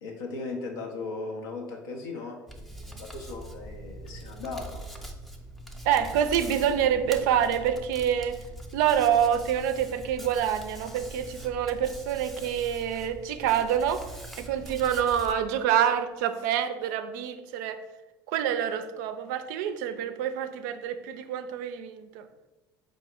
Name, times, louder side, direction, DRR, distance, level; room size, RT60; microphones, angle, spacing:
voice 1, 0.0-4.8, left 3 dB, 80° left, 0 dB, 0.5 m, -37 dB
Hands, 2.5-15.3, right 1 dB, ahead, 0.5 m, -43 dB
voice 2, 5.8-8.4 8.7-14.1 14.4-17.8 18.3-22.3, right 9 dB, 70° right, 9 dB, 0.4 m, -27 dB
4.7 x 2.0 x 3.7 m, 1.1 s
hypercardioid pair, 65°, 11 cm